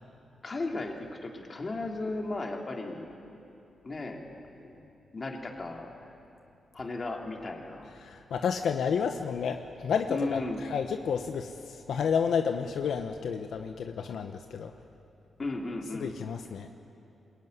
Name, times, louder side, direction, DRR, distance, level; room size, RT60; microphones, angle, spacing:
voice 1, 0.4-3.1 3.8-4.2 4.5-4.7 5.1-5.9 6.7-7.9 10.1-10.6 15.4-16.1, left 2 dB, 30° left, 1 dB, 2.9 m, -35 dB
voice 2, 8.0-14.7 16.0-16.7, left 6 dB, 75° left, 6 dB, 1.0 m, -31 dB
21.5 x 21.5 x 9.6 m, 2.8 s
wide cardioid pair, 130°, 0 cm